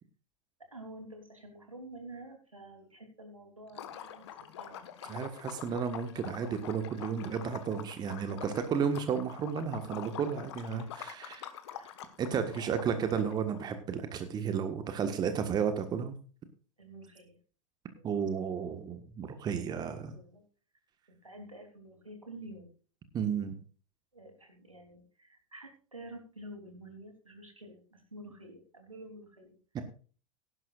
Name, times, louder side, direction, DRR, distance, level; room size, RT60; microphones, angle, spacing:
voice 1, 0.7-4.3 4.6-5.2 10.7-11.0 11.7-12.0 12.5-13.0 16.8-17.4 17.9-18.3 20.1-20.4 21.1-22.7 24.1-29.6, right 1 dB, 80° right, 4 dB, 3.4 m, -49 dB
Liquid, 3.7-13.6, left 10 dB, 55° left, 1.5 m, -46 dB
voice 2, 5.0-11.5 12.2-16.2 18.0-20.1 23.1-23.5 29.7-29.8, right 7 dB, 25° right, 9 dB, 1.5 m, -33 dB
17.5 x 11.5 x 2.5 m, 0.38 s
figure-of-eight pair, 90°, 17 cm